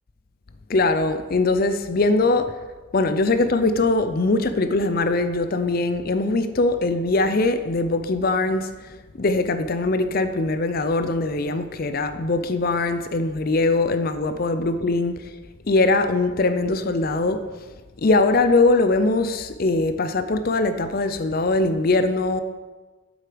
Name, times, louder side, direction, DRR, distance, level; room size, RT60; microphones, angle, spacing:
voice 1, 0.7-2.5 2.9-15.2 15.7-17.4 18.0-22.4, left 2 dB, 45° left, 0.5 m, -21 dB
8.0 x 7.7 x 5.1 m
head